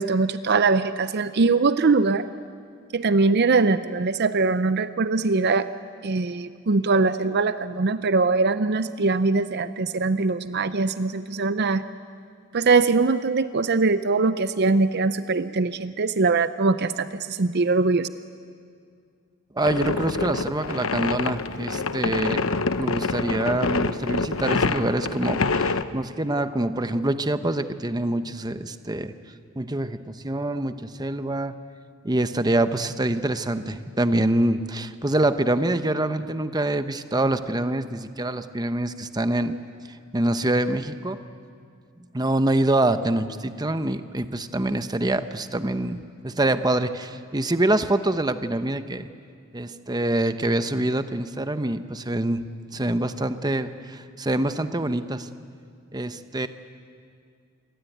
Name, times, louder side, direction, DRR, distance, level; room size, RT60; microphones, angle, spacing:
voice 1, 0.0-2.3 2.9-5.7 6.0-11.8 12.5-18.1, right 3 dB, 50° right, 13 dB, 0.6 m, -22 dB
sound 1, 19.6-25.8, left 3 dB, 75° left, 0.9 m, -26 dB
voice 2, 19.6-22.5 22.8-29.1 29.6-31.6 32.0-39.6 40.1-41.2 42.1-49.1 49.5-52.4 52.7-55.3 55.9-56.5, right 1 dB, 20° right, 10 dB, 0.9 m, -25 dB
28.0 x 23.0 x 9.3 m, 2.2 s
head